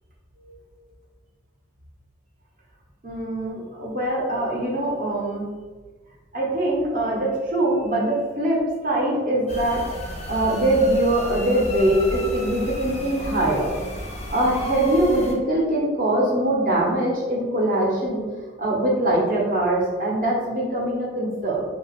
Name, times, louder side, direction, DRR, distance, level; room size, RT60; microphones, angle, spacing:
voice 1, 3.0-5.5 6.3-9.8 10.3-13.7 14.1-18.2 18.6-21.6, right 1 dB, 45° right, -4 dB, 0.7 m, -22 dB
sound 1, 9.5-15.3, left 1 dB, 30° left, 0.4 m, -33 dB
2.7 x 2.3 x 2.9 m, 1.4 s
head